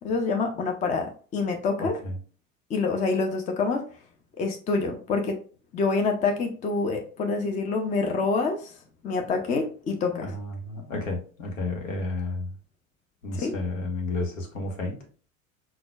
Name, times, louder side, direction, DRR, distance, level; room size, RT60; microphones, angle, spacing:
voice 1, 0.0-2.0 2.7-3.8 4.4-5.4 5.7-8.7 9.0-10.3 13.3-13.5, left 4 dB, 20° left, 4 dB, 0.5 m, -26 dB
voice 2, 1.8-2.2 10.1-12.5 13.2-15.0, left 2 dB, 65° left, 3 dB, 1.1 m, -32 dB
5.9 x 2.3 x 2.2 m, 0.40 s
figure-of-eight pair, 75°, 41 cm